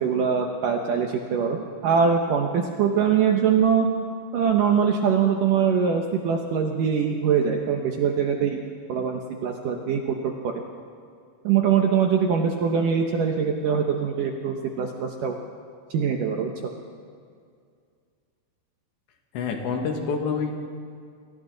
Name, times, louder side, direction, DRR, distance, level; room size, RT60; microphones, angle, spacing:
voice 1, 0.0-3.9 4.3-8.6 8.9-10.2 11.4-15.4 15.9-16.5, right 7 dB, 70° right, 3 dB, 2.0 m, -23 dB
voice 2, 19.3-20.5, left 5 dB, 80° left, 3 dB, 4.1 m, -27 dB
29.5 x 23.5 x 4.0 m, 2.2 s
omnidirectional pair, 5.1 m